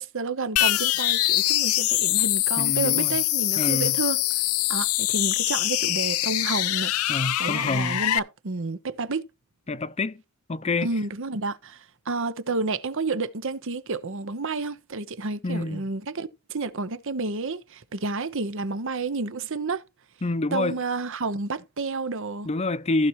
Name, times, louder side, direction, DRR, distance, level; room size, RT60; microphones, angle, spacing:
voice 1, 0.0-4.2 4.7-6.9 7.4-9.2 10.8-19.8 20.5-22.5, right 3 dB, 60° right, 0.9 m, -30 dB
sound 1, 0.6-8.2, left 16 dB, 80° left, 0.5 m, -24 dB
voice 2, 2.6-3.2 3.6-4.0 7.1-8.0 9.7-10.2 10.5-10.9 15.4-15.8 20.2-20.8 22.4-23.1, left 2 dB, 30° left, 0.6 m, -27 dB
15.0 x 5.7 x 3.1 m
head